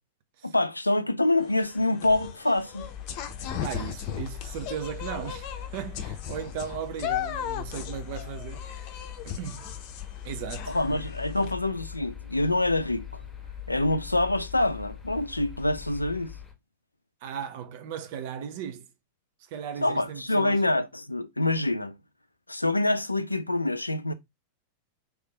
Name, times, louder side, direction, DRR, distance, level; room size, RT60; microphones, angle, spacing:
voice 1, 0.4-2.9 10.7-13.2 13.7-16.3 19.8-22.0 22.5-24.1, left 2 dB, 85° left, 0.4 m, -26 dB
sound 1, 1.4-11.5, left 10 dB, 45° left, 0.6 m, -37 dB
sound 2, 2.8-16.5, left 9 dB, 10° left, 1.4 m, -41 dB
voice 2, 3.6-8.7 9.2-9.6 10.2-11.1 17.2-18.9 19.5-20.6, right 8 dB, 50° right, 0.8 m, -36 dB
3.4 x 3.4 x 3.2 m
figure-of-eight pair, 90°, 0 cm